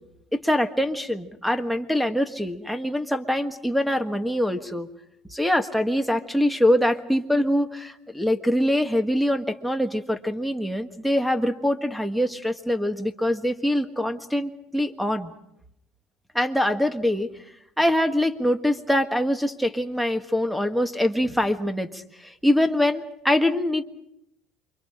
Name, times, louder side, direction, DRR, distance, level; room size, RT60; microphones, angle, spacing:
voice 1, 0.3-4.9 5.3-15.3 16.3-17.3 17.8-23.8, left 1 dB, ahead, 9 dB, 1.5 m, -24 dB
28.5 x 24.5 x 5.0 m, 0.79 s
cardioid pair, 125°, 0 cm